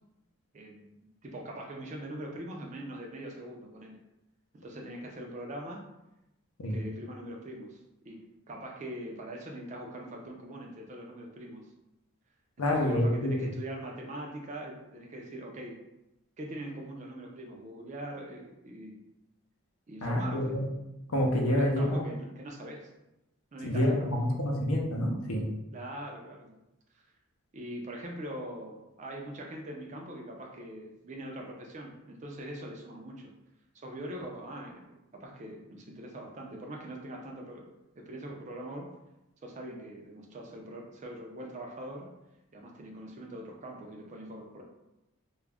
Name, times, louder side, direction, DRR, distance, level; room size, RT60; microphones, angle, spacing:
voice 1, 0.5-4.0 4.5-5.8 6.7-11.6 12.6-15.8 16.4-19.0 19.9-20.5 21.5-22.9 23.5-24.1 25.7-26.5 27.5-33.3 33.7-34.8 35.1-37.6 38.0-38.9 39.4-42.1 42.5-44.6, right 1 dB, 30° right, 0 dB, 0.3 m, -42 dB
voice 2, 12.6-13.3 20.0-20.6 21.1-22.0 23.6-25.5, left 1 dB, 75° left, 0 dB, 0.6 m, -27 dB
2.3 x 2.0 x 3.3 m, 0.92 s
head